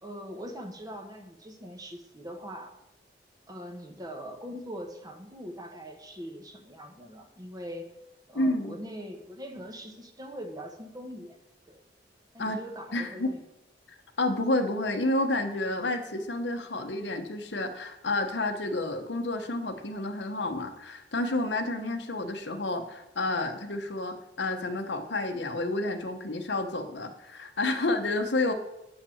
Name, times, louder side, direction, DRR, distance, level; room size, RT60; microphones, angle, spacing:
voice 1, 0.0-2.7 3.5-7.9 8.3-11.4 11.7-11.8 12.3-13.4 21.8-22.0, equal, 20° right, 4 dB, 1.2 m, -42 dB
voice 2, 8.3-8.8 12.4-12.6 12.9-13.3 13.9-28.5, left 2 dB, 75° left, 6 dB, 1.0 m, -30 dB
7.6 x 5.7 x 7.0 m, 0.93 s
head